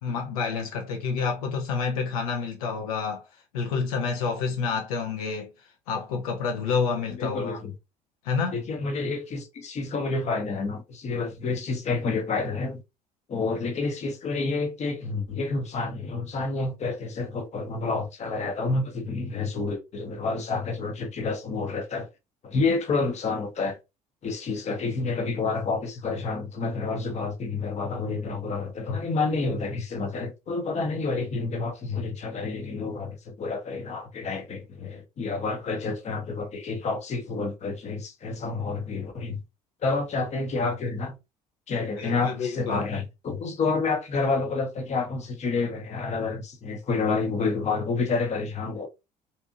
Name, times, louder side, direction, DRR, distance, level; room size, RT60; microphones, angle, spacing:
voice 1, 0.0-5.5 5.9-7.6 8.2-8.6 42.0-42.8, left 5 dB, 70° left, 0.5 m, -29 dB
voice 2, 7.1-7.7 8.5-12.8 13.3-22.1 22.4-23.8 24.2-39.4 39.8-41.2 41.7-48.9, left 4 dB, 35° left, 0.7 m, -29 dB
2.7 x 2.6 x 2.4 m
figure-of-eight pair, 50°, 19 cm